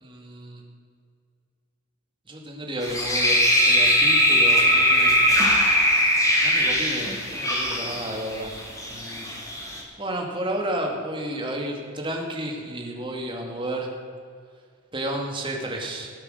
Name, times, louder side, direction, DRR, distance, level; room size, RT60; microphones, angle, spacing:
voice 1, 0.0-0.6 2.3-5.2 6.4-8.5 8.9-9.3 10.0-13.9 14.9-16.1, right 1 dB, 25° right, 1 dB, 2.1 m, -32 dB
sound 1, 2.8-9.8, equal, 15° left, 2.4 m, -20 dB
17.0 x 8.4 x 6.6 m, 2.2 s
head